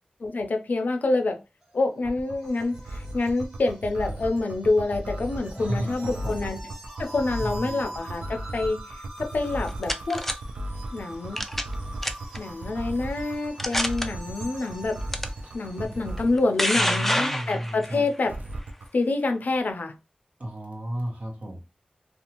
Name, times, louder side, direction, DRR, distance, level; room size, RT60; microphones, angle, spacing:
voice 1, 0.2-1.4 1.7-6.6 7.0-10.2 10.9-11.4 12.4-15.0 15.5-18.4 18.9-19.9, left 3 dB, 80° left, 0.5 m, -27 dB
sound 1, 1.6-16.2, right 1 dB, 25° right, 0.9 m, -44 dB
sound 2, 2.0-16.4 18.3-18.8, right 1 dB, 85° right, 0.4 m, -35 dB
voice 2, 5.6-6.4 7.4-7.9 15.4-15.5 15.8-16.1 16.7-18.0 20.4-21.6, equal, 55° right, 1.1 m, -33 dB
sound 3, 9.4-10.3 11.4-11.7 12.0-12.4 13.0-13.1 13.6-14.1 15.1-15.3 16.2-17.9, left 1 dB, 10° left, 0.4 m, -26 dB
2.6 x 2.3 x 2.8 m
wide cardioid pair, 65°, 3 cm